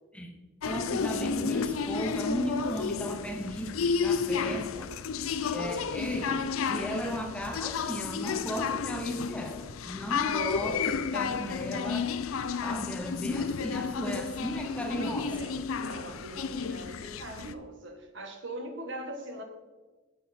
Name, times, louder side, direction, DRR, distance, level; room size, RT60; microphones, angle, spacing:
sound 1, 0.6-17.5, left 5 dB, 85° left, 0.5 m, -32 dB
voice 1, 0.6-4.9 5.5-12.1 12.6-15.3, equal, 5° left, 4 dB, 0.7 m, -35 dB
voice 2, 15.0-19.4, right 1 dB, 60° right, 5 dB, 1.4 m, -41 dB
8.5 x 7.6 x 4.3 m, 1.3 s
head